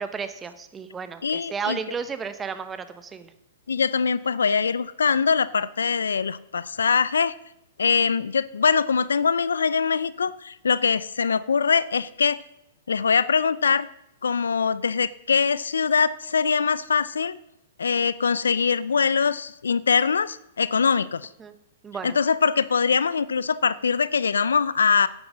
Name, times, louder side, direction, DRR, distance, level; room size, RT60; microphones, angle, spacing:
voice 1, 0.0-3.3 21.4-21.5 21.8-22.2, right 6 dB, 15° right, 10 dB, 1.1 m, -33 dB
voice 2, 1.2-1.8 3.7-7.3 7.8-12.4 12.9-13.9 14.2-17.4 17.8-21.3 22.0-25.1, left 5 dB, 85° left, 18 dB, 0.5 m, -23 dB
10.5 x 9.0 x 6.3 m, 0.83 s
hypercardioid pair, 125°, 0 cm